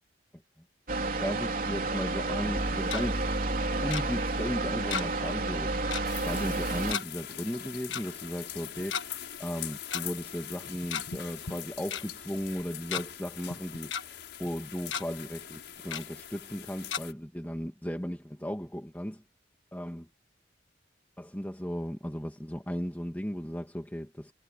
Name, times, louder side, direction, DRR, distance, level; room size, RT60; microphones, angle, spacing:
sound 1, 0.9-6.9, right 2 dB, 50° right, 3.8 m, -30 dB
voice 1, 1.2-3.3 3.8-5.8 6.3-19.2 19.7-20.0 21.2-24.3, equal, 10° left, 2.1 m, -36 dB
Tick-tock, 2.6-3.0 3.9-4.0 4.9-5.3 5.5-5.6 5.9-6.1 6.9-7.0 7.9-8.0 8.8-9.0 9.9-10.0 10.7-11.2 11.5-11.6 11.9-12.0 12.6-13.0 13.5-14.0 14.4-14.6 14.9-15.0 15.9-16.0 16.9-17.0, left 7 dB, 90° left, 1.4 m, -34 dB
sound 2, 6.1-17.1, left 10 dB, 70° left, 7.3 m, -43 dB
head